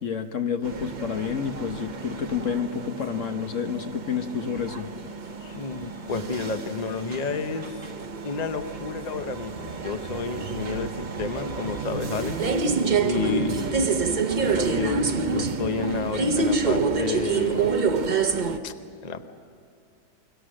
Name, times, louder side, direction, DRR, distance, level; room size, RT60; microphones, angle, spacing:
voice 1, 0.0-4.9, left 7 dB, 50° left, 7 dB, 1.3 m, -29 dB
sound 1, 0.6-18.6, right 4 dB, 35° right, 0.8 m, -28 dB
voice 2, 5.4-7.8 8.2-10.9 11.2-12.4 13.0-13.7 14.4-15.0 15.3-17.9 18.6-18.7 19.0-19.3, left 4 dB, 35° left, 8 dB, 0.7 m, -31 dB
29.5 x 22.5 x 6.4 m, 2.4 s
omnidirectional pair, 1.8 m